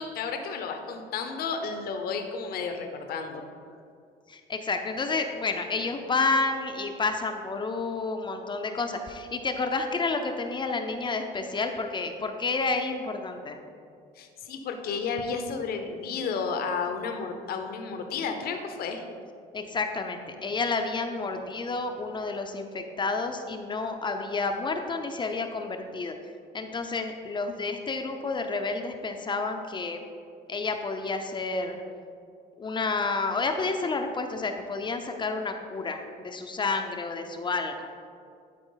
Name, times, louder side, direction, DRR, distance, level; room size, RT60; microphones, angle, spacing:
voice 1, 0.0-3.4 14.2-19.0, left 5 dB, 65° left, 5 dB, 0.9 m, -32 dB
voice 2, 4.3-13.6 19.5-26.1 26.5-30.0 30.5-31.8 32.6-37.9, left 3 dB, 30° left, 5 dB, 0.6 m, -30 dB
12.0 x 4.5 x 3.9 m, 2.3 s
cardioid pair, 110°, 17 cm